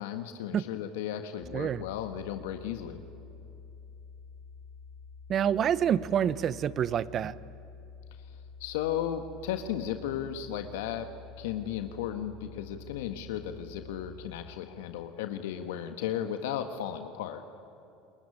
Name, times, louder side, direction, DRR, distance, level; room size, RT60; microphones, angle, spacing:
voice 1, 0.0-3.0 8.6-11.1 11.4-17.4, left 10 dB, 80° left, 6 dB, 1.5 m, -35 dB
sound 1, 1.4-14.5, left 5 dB, 10° right, 3.7 m, -49 dB
voice 2, 1.5-1.8 5.3-7.3, right 9 dB, 45° right, 17 dB, 0.9 m, -27 dB
28.0 x 21.5 x 9.9 m, 2.7 s
hypercardioid pair, 80°, 0 cm